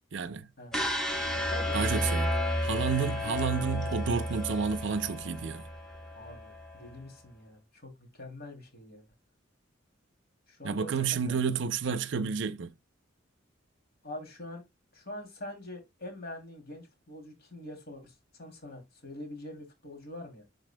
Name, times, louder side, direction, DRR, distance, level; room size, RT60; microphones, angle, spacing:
voice 1, 0.1-0.5 1.7-2.3 2.6-5.6 10.6-12.7, right 6 dB, 65° right, 0.6 m, -30 dB
sound 1, 0.7-6.8, equal, 5° left, 1.1 m, -32 dB
voice 2, 1.3-2.1 3.2-3.4 6.1-9.0 10.5-10.9 11.3-11.6 14.0-14.6 14.9-20.4, left 1 dB, 55° left, 2.8 m, -44 dB
11.0 x 4.0 x 2.2 m
head